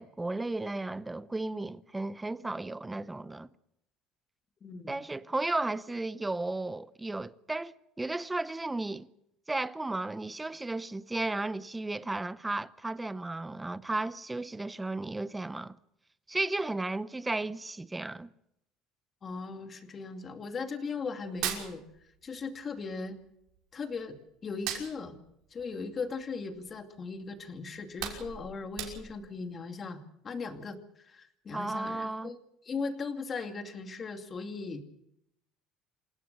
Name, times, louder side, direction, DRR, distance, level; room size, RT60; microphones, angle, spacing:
voice 1, 0.0-3.5 4.9-9.1 9.5-15.8 16.3-18.3 31.5-32.3, right 2 dB, 10° right, 0.8 m, -34 dB
voice 2, 4.6-4.9 19.2-23.2 23.7-25.2 25.5-30.0 30.2-32.4 32.6-34.9, left 4 dB, 30° left, 2.5 m, -38 dB
Hands, 21.2-22.5 22.8-24.1 24.4-26.8 27.2-27.4 27.7-29.3, right 10 dB, 70° right, 5.9 m, -39 dB
27.5 x 17.5 x 6.9 m
cardioid pair, 130°, 0 cm